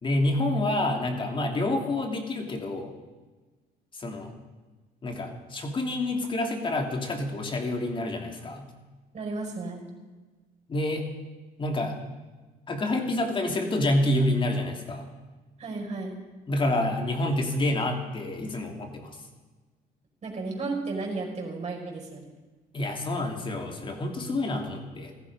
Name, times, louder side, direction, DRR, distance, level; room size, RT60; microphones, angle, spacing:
voice 1, 0.0-2.9 3.9-4.3 5.0-8.7 10.7-11.1 11.6-12.0 12.7-15.1 16.5-19.2 22.7-25.1, left 1 dB, 30° left, 4 dB, 2.6 m, -28 dB
voice 2, 9.1-9.8 15.6-16.2 20.2-22.3, right 3 dB, 40° right, 0 dB, 5.4 m, -33 dB
16.0 x 14.5 x 5.3 m, 1.3 s
cardioid pair, 110°, 17 cm